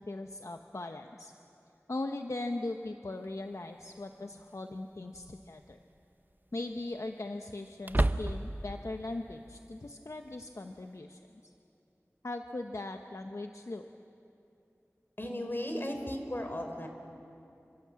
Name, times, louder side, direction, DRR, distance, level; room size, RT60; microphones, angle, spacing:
voice 1, 0.0-1.3 1.9-5.8 6.5-11.2 12.2-13.8, left 2 dB, 70° left, 5 dB, 1.0 m, -39 dB
sound 1, 3.2-3.3 5.1-5.6 5.9-6.0 7.8-8.7, right 1 dB, 35° right, 0.8 m, -30 dB
voice 2, 15.2-16.9, left 1 dB, 45° left, 4 dB, 4.0 m, -36 dB
28.5 x 25.5 x 7.5 m, 2.7 s
wide cardioid pair, 40°, 5 cm